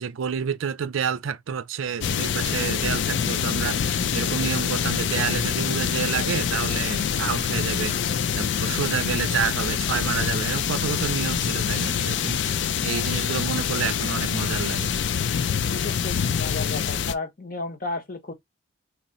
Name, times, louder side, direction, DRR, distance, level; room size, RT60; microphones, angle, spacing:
voice 1, 0.0-14.9, right 7 dB, 90° right, 0.4 m, -29 dB
sound 1, 2.0-17.1, left 7 dB, 65° left, 0.4 m, -25 dB
voice 2, 12.8-13.1 15.5-18.3, left 3 dB, 45° left, 1.0 m, -34 dB
3.0 x 3.0 x 4.0 m
head